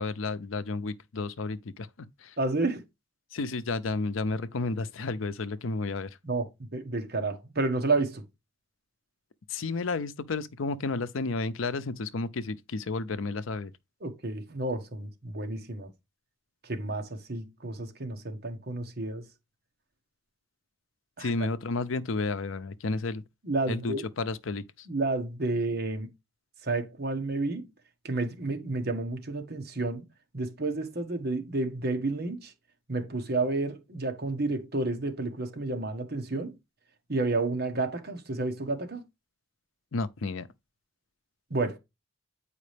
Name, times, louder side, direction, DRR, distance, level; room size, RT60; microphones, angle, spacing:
voice 1, 0.0-1.9 2.2-2.3 3.3-6.2 9.5-13.7 21.2-23.2 23.7-24.9 39.9-40.5, left 3 dB, 80° left, 0.6 m, -32 dB
voice 2, 2.4-2.8 6.2-8.2 14.0-15.9 16.6-19.3 21.2-21.5 23.4-24.1 24.9-26.1 26.6-27.7 28.0-30.0 30.3-32.5 32.9-36.5 37.1-39.0 41.5-41.8, right 2 dB, 50° right, 1.3 m, -30 dB
8.4 x 4.9 x 3.3 m
head